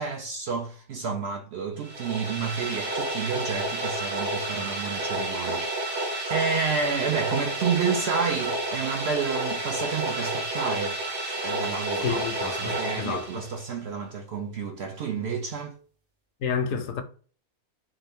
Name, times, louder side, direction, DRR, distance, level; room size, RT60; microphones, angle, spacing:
voice 1, 0.0-6.0 6.3-11.0 11.2-12.2 12.6-15.8, right 5 dB, 65° right, 0.6 m, -30 dB
sound 1, 1.8-13.7, right 1 dB, 45° right, 1.1 m, -30 dB
voice 2, 12.0-13.3 16.4-17.0, left 6 dB, 75° left, 1.0 m, -29 dB
3.8 x 2.5 x 3.5 m
omnidirectional pair, 1.5 m